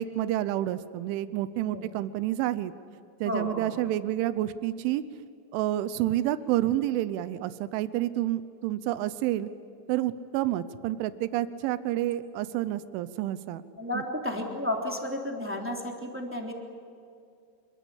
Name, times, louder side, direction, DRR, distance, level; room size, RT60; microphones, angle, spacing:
voice 1, 0.0-2.7 3.2-5.0 5.5-9.5 9.9-13.6 13.9-14.0, right 13 dB, 90° right, 13 dB, 3.3 m, -29 dB
voice 2, 3.2-3.7 13.8-16.5, left 1 dB, 5° right, 0 dB, 2.4 m, -32 dB
27.5 x 22.5 x 8.6 m, 2.4 s
omnidirectional pair, 5.4 m